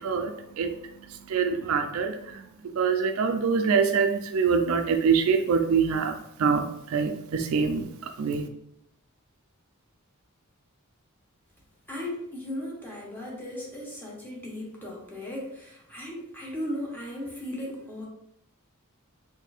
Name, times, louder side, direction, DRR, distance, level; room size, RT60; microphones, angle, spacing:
voice 1, 0.0-8.5, right 5 dB, 70° right, 6 dB, 0.4 m, -25 dB
voice 2, 11.9-18.1, left 1 dB, 10° left, -3 dB, 0.8 m, -36 dB
4.2 x 2.6 x 2.4 m, 0.78 s
head